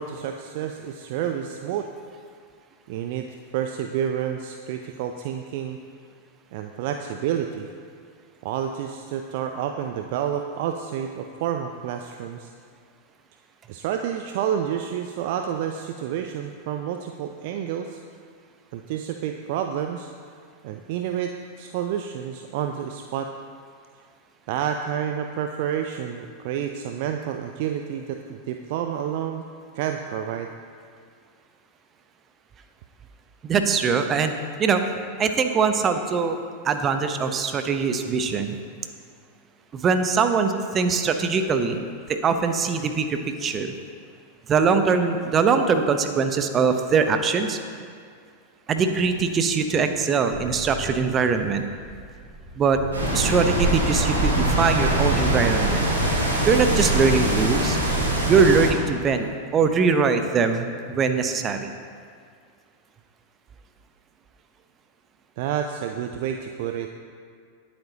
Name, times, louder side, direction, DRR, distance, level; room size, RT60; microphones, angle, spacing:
voice 1, 0.0-1.9 2.9-3.3 3.5-5.8 6.5-7.7 8.4-12.5 13.7-18.0 18.7-20.1 20.6-23.3 24.5-29.5 29.7-30.5 65.4-66.9, right 9 dB, 50° right, 5 dB, 0.5 m, -29 dB
voice 2, 33.4-34.8 35.2-36.4 36.6-38.6 39.7-41.8 42.1-43.7 44.5-47.6 48.7-51.6 52.6-52.8 53.1-55.9 56.4-57.8 58.3-61.7, right 5 dB, 25° right, 7 dB, 0.9 m, -22 dB
sound 1, 50.3-56.6, equal, 10° left, 3.1 m, -40 dB
sound 2, 52.9-58.7, right 1 dB, 70° right, 3.3 m, -23 dB
18.5 x 8.6 x 2.9 m, 2.1 s
figure-of-eight pair, 90°, 0 cm